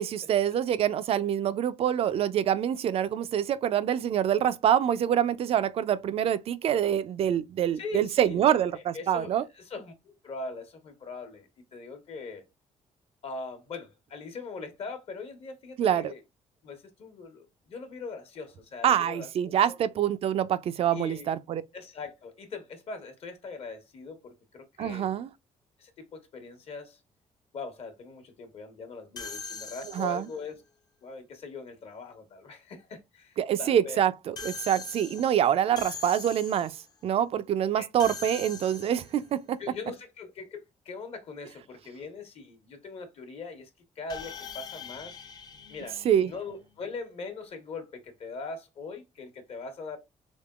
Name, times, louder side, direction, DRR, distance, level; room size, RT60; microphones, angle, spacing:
voice 1, 0.0-9.4 15.8-16.1 18.8-21.6 24.8-25.3 29.9-30.3 33.4-36.8 37.0-39.6 46.0-46.3, right 10 dB, 50° right, 0.4 m, -26 dB
voice 2, 7.8-9.9 10.2-12.4 13.2-16.2 16.6-19.8 20.9-21.3 21.7-25.1 25.8-27.0 27.5-30.6 31.0-34.0 37.7-37.9 39.6-43.7 44.0-45.2 45.7-50.0, left 4 dB, 50° left, 1.1 m, -41 dB
sound 1, 29.2-30.4 34.4-36.9 38.0-39.3 44.1-46.6, left 5 dB, 30° left, 0.6 m, -42 dB
3.6 x 3.5 x 2.3 m
cardioid pair, 155°, 13 cm